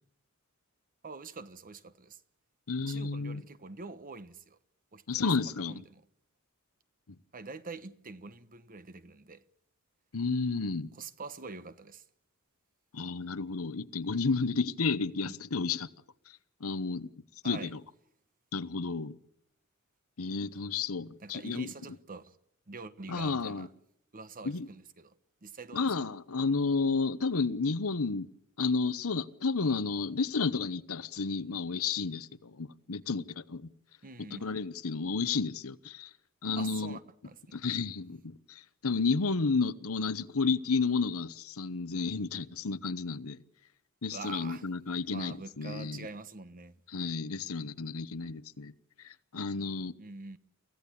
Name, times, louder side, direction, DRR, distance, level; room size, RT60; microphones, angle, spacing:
voice 1, 1.0-2.2 2.9-4.6 4.9-6.0 7.3-9.4 10.9-12.0 15.2-15.4 17.4-17.7 21.2-22.4 22.7-23.7 24.1-25.1 25.4-25.9 34.0-34.5 36.6-37.6 44.1-44.7 45.1-46.8 50.0-50.4, right 4 dB, 40° right, 1.1 m, -45 dB
voice 2, 2.7-3.4 5.1-5.8 10.1-10.9 12.9-15.9 16.6-17.1 17.4-17.8 18.5-19.2 20.2-21.7 23.1-23.7 24.4-24.7 25.7-28.3 28.6-33.7 34.3-36.1 36.4-37.0 37.5-43.4 44.0-46.1 46.9-48.7 49.0-49.9, left 4 dB, 75° left, 1.0 m, -31 dB
24.5 x 16.0 x 8.6 m
head